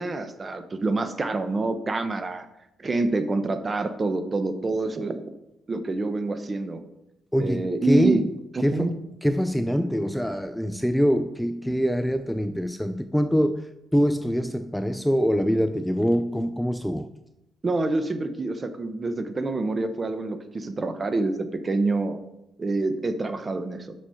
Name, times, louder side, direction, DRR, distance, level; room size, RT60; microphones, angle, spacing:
voice 1, 0.0-2.5 2.8-5.3 5.7-6.8 7.4-8.2 8.5-8.9 17.6-22.2 22.6-23.9, right 3 dB, 30° right, 0.9 m, -27 dB
voice 2, 7.3-8.3 8.6-17.1, equal, ahead, 0.4 m, -24 dB
6.3 x 6.2 x 5.7 m
cardioid pair, 90°, 0 cm